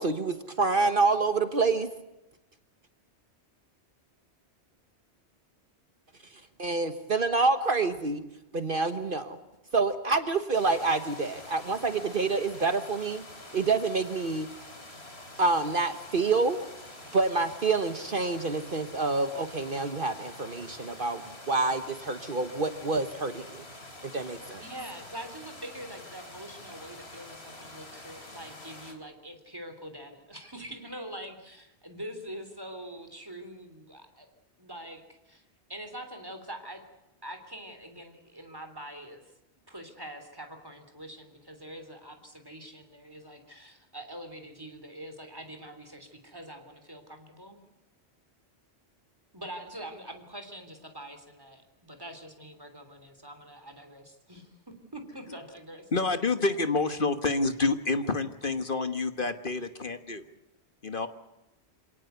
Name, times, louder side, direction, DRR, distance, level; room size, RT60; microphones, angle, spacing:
voice 1, 0.0-1.9 6.6-8.2 8.5-9.4 9.7-13.2 13.5-14.5 15.4-16.6 17.1-21.2 21.5-23.6 24.0-24.6, right 3 dB, 50° right, 9 dB, 1.4 m, -27 dB
sound 1, 10.5-28.9, left 2 dB, 65° left, 3.7 m, -47 dB
voice 2, 24.6-34.3 34.6-35.4 35.7-36.8 37.2-39.3 39.7-47.6 49.3-55.9, right 1 dB, 20° right, 6 dB, 3.4 m, -44 dB
voice 3, 55.9-60.2 60.8-61.1, left 3 dB, 50° left, 9 dB, 1.5 m, -28 dB
26.5 x 18.0 x 8.2 m, 0.97 s
omnidirectional pair, 1.1 m